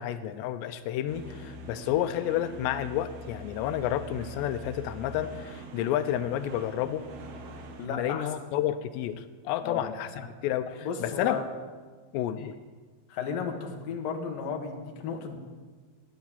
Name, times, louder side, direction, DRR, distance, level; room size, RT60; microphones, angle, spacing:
voice 1, 0.0-7.1 7.9-10.1 10.4-11.4 12.1-12.5, left 11 dB, 90° left, 10 dB, 2.8 m, -30 dB
sound 1, 1.1-7.9, right 1 dB, 70° right, 3.3 m, -43 dB
voice 2, 7.8-8.2 9.6-9.8 10.1-10.3 10.8-11.5 12.4-12.5 13.1-15.4, left 5 dB, 60° left, 2 dB, 2.9 m, -34 dB
14.5 x 10.5 x 7.2 m, 1.5 s
omnidirectional pair, 4.8 m